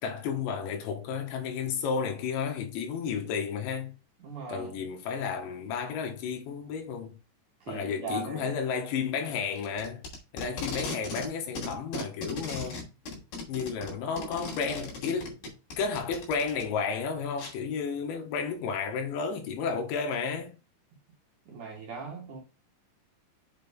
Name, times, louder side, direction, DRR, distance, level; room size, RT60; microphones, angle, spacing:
voice 1, 0.0-3.9 4.5-7.2 7.7-10.0 10.3-12.8 13.5-15.4 15.8-20.6, left 6 dB, 75° left, 3.8 m, -32 dB
voice 2, 4.2-4.7 7.7-8.5 12.4-12.5 21.5-22.4, right 4 dB, 55° right, 2.3 m, -39 dB
Packing tape duct tape, 9.6-11.3 11.6-16.6 17.4-17.5, left 2 dB, 55° left, 4.2 m, -37 dB
7.8 x 5.3 x 3.6 m
omnidirectional pair, 5.5 m